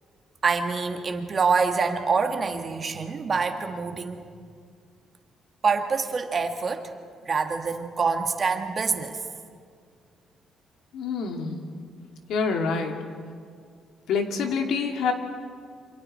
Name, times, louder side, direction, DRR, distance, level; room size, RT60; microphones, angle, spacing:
voice 1, 0.4-4.3 5.6-6.9 7.3-9.2, right 5 dB, 35° right, 6 dB, 1.8 m, -26 dB
voice 2, 10.9-11.7 12.3-13.0 14.1-15.1, left 5 dB, 80° left, 3 dB, 2.7 m, -26 dB
28.0 x 26.0 x 4.4 m, 2.1 s
cardioid pair, 140°, 0 cm